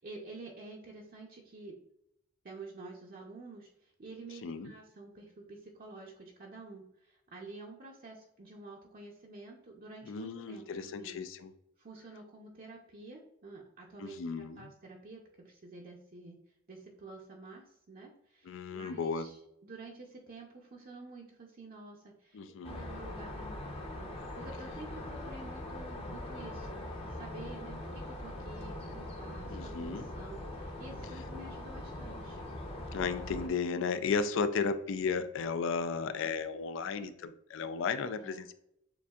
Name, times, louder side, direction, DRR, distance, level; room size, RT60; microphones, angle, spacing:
voice 1, 0.0-1.8 2.4-11.2 11.8-16.4 16.7-32.4 38.2-38.5, right 3 dB, 45° right, -1 dB, 0.6 m, -49 dB
voice 2, 10.1-11.5 14.0-14.7 18.4-19.3 22.3-22.8 29.5-30.1 32.9-38.5, left 5 dB, 65° left, 11 dB, 0.4 m, -34 dB
sound 1, 22.6-33.5, left 1 dB, 30° left, 0.7 m, -42 dB
6.9 x 2.6 x 2.3 m, 0.78 s
head